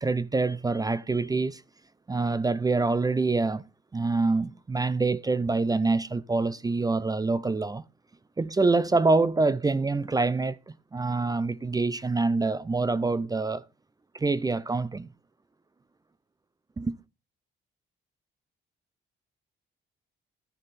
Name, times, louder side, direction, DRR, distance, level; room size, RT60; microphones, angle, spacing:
voice 1, 0.0-1.6 2.1-3.6 3.9-7.8 8.4-13.6 14.1-15.1 16.8-17.0, right 3 dB, 20° right, 0.5 m, -26 dB
13.5 x 6.3 x 4.1 m
cardioid pair, 90°, 20 cm